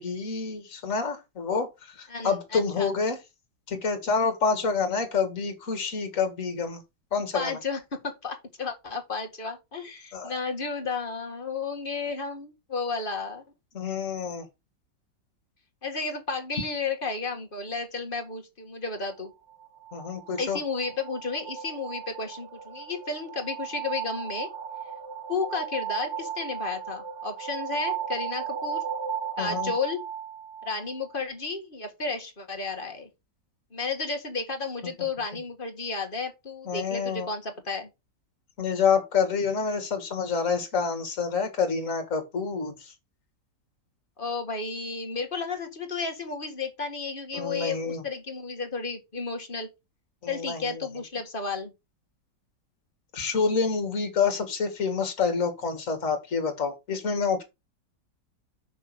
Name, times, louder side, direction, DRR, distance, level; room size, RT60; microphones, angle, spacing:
voice 1, 0.0-3.2 3.7-6.8 7.1-7.6 10.1-10.4 13.7-14.5 19.9-20.6 29.4-29.7 36.7-37.3 38.6-42.9 47.3-48.0 50.2-50.8 53.1-57.4, left 5 dB, 45° left, 2.5 m, -28 dB
voice 2, 2.1-2.9 7.3-13.4 15.8-19.3 20.4-24.5 25.3-28.8 29.4-30.0 30.6-33.1 33.7-37.9 44.2-49.7 50.3-51.7, left 4 dB, 30° left, 2.1 m, -32 dB
sound 1, 19.5-31.2, right 8 dB, 45° right, 1.4 m, -35 dB
6.3 x 6.3 x 6.1 m
omnidirectional pair, 1.9 m